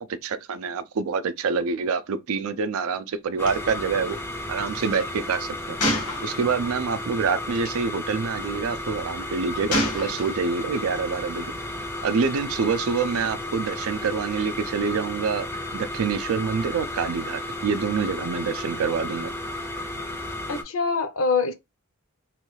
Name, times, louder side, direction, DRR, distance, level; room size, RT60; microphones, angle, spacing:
voice 1, 0.1-4.2 4.5-5.8 6.2-11.5 12.0-19.3, right 5 dB, 70° right, 0.4 m, -26 dB
sound 1, 3.4-20.6, left 1 dB, 10° left, 0.4 m, -33 dB
Gunshot gunfire, 3.5-3.6 3.8-4.0 5.8-6.8 7.6-7.8 9.7-10.6, left 1 dB, 90° left, 1.2 m, -27 dB
voice 2, 20.5-21.5, left 4 dB, 65° left, 0.6 m, -24 dB
3.1 x 2.3 x 3.1 m
head